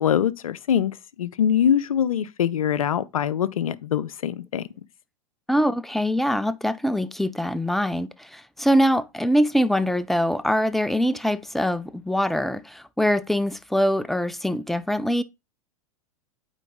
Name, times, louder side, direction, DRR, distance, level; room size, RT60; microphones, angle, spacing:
voice 1, 0.0-4.6, left 9 dB, 80° left, 0.6 m, -23 dB
voice 2, 5.5-15.2, equal, ahead, 0.4 m, -23 dB
9.0 x 4.0 x 3.6 m
hypercardioid pair, 105°, 18 cm